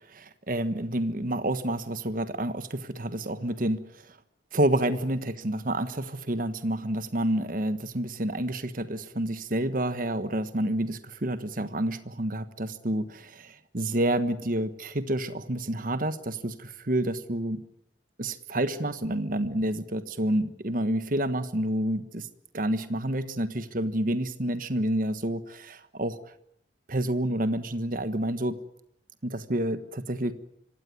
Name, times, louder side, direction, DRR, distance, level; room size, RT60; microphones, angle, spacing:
voice 1, 0.1-3.8 4.5-17.6 18.2-22.3 22.5-26.2 26.9-28.6 29.2-30.3, right 1 dB, 50° right, 11 dB, 1.4 m, -29 dB
25.5 x 17.0 x 9.6 m, 0.74 s
head